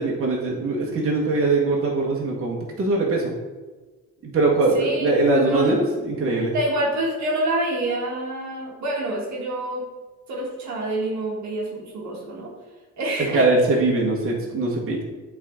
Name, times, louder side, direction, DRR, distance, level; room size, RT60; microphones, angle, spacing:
voice 1, 0.0-3.3 4.2-6.5 13.3-15.0, right 2 dB, 45° right, -2 dB, 1.5 m, -21 dB
voice 2, 4.7-5.8 6.5-9.8 10.3-12.5 13.0-13.5, right 1 dB, 65° right, -2 dB, 1.5 m, -27 dB
8.1 x 3.8 x 3.7 m, 1.3 s
cardioid pair, 90°, 30 cm